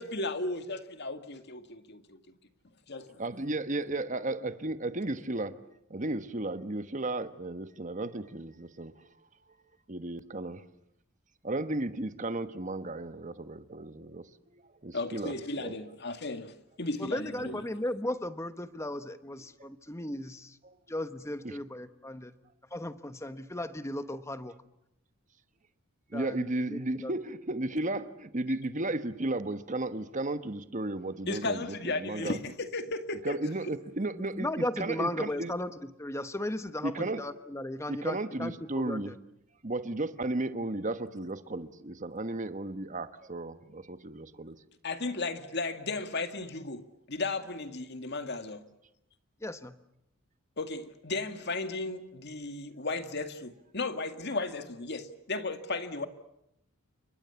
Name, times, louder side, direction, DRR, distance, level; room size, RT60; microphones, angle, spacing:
voice 1, 0.0-2.2 2.9-3.0 14.9-17.6 31.3-33.4 44.8-48.6 50.6-56.1, left 3 dB, 55° left, 2.1 m, -35 dB
voice 2, 3.2-5.6 5.9-8.9 9.9-10.6 11.4-15.7 17.3-17.6 19.6-19.7 20.6-20.8 21.4-21.6 26.1-32.4 33.2-35.5 36.8-37.3 37.9-39.2 39.6-44.6, right 2 dB, 35° right, 1.3 m, -34 dB
voice 3, 17.0-20.6 20.9-22.3 22.7-24.5 26.1-27.1 34.1-35.7 36.0-39.1 49.4-49.7, left 1 dB, 15° left, 1.2 m, -36 dB
29.5 x 24.5 x 7.1 m
head